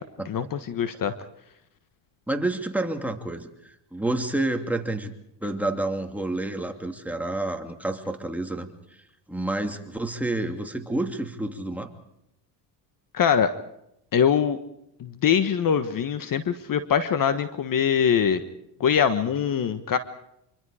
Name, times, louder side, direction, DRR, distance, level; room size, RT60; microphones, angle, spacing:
voice 1, 0.2-1.1 13.1-13.5 14.1-14.6 15.0-18.4 18.8-20.0, left 8 dB, 45° left, 11 dB, 1.4 m, -23 dB
voice 2, 2.3-5.1 5.4-9.0 9.3-11.9, right 2 dB, 5° right, 3 dB, 2.7 m, -29 dB
26.0 x 24.5 x 5.0 m, 0.80 s
supercardioid pair, 95°, 47 cm